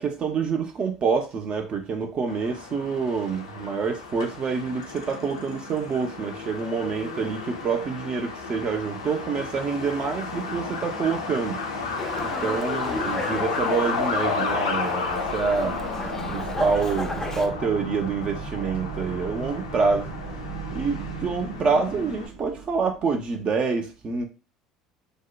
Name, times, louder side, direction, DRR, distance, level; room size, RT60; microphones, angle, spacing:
voice 1, 0.0-11.6 12.2-15.8 16.3-20.1 20.7-24.3, right 5 dB, 35° right, 0.5 m, -27 dB
Truck, 2.3-22.3, left 4 dB, 80° left, 0.4 m, -33 dB
Dog, 12.0-17.5, left 2 dB, 15° left, 0.5 m, -34 dB
sound 1, 15.1-23.3, right 5 dB, 75° right, 0.9 m, -37 dB
2.7 x 2.1 x 2.3 m
figure-of-eight pair, 65°, 3 cm